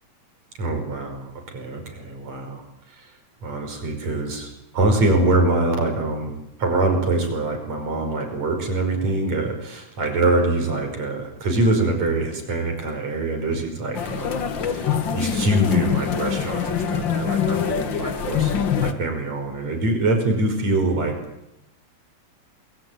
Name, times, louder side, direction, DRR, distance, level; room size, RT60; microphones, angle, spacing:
voice 1, 0.6-2.6 2.9-3.1 3.4-6.3 6.6-18.5 18.8-21.2, right 2 dB, 60° right, 4 dB, 6.6 m, -24 dB
sound 1, 13.9-18.9, left 7 dB, 45° left, 1.9 m, -24 dB
28.0 x 20.5 x 9.3 m, 0.86 s
omnidirectional pair, 3.5 m